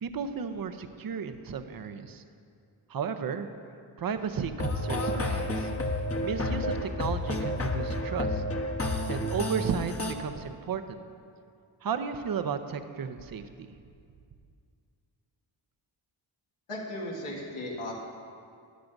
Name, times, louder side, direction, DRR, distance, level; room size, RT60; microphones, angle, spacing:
voice 1, 0.0-2.2 2.9-3.5 4.0-5.7 6.2-8.4 9.1-11.0 11.8-13.7, right 6 dB, 45° right, 8 dB, 0.7 m, -34 dB
sound 1, 4.6-10.1, left 1 dB, 30° left, 1.1 m, -30 dB
voice 2, 16.7-17.9, left 1 dB, 85° left, -4 dB, 2.1 m, -36 dB
13.0 x 10.5 x 2.6 m, 2.4 s
cardioid pair, 55°, 49 cm